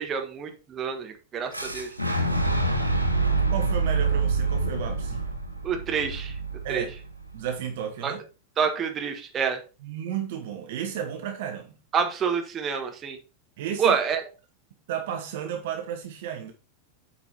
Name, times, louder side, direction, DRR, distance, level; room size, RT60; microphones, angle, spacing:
voice 1, 0.0-1.9 5.6-6.3 6.7-6.9 8.0-8.1 8.6-9.6 11.9-13.2 13.8-14.2, right 6 dB, 25° right, 1.5 m, -27 dB
Boom, 1.5-7.4, right 3 dB, 90° left, 1.2 m, -26 dB
voice 2, 3.5-5.3 6.6-6.9 7.3-8.2 9.8-11.8 13.6-14.0 14.9-16.5, right 9 dB, 55° right, 1.2 m, -33 dB
8.2 x 5.1 x 4.4 m
figure-of-eight pair, 90°, 0 cm